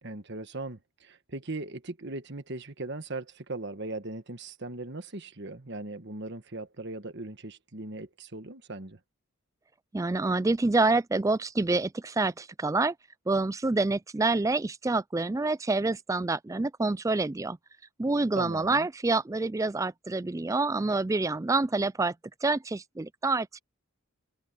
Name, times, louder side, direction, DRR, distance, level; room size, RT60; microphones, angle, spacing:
voice 1, 0.0-9.0 18.4-18.9, right 2 dB, 50° right, 1.5 m, -39 dB
voice 2, 9.9-12.9 13.3-17.6 18.0-22.1 22.4-23.6, right 3 dB, 15° right, 0.3 m, -27 dB
head